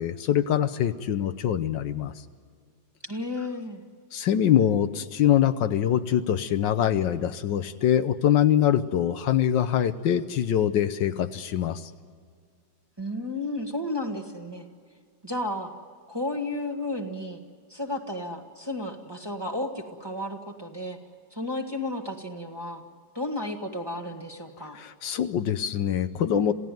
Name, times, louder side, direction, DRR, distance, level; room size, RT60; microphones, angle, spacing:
voice 1, 0.0-2.1 4.1-11.9 24.8-26.5, left 10 dB, 75° left, 11 dB, 1.5 m, -24 dB
voice 2, 3.0-3.8 13.0-14.7 15.2-15.8 16.1-17.4 17.7-21.0 21.3-22.8 23.1-24.8, left 1 dB, 15° right, 2 dB, 1.7 m, -33 dB
27.5 x 17.0 x 9.2 m, 2.1 s
omnidirectional pair, 2.1 m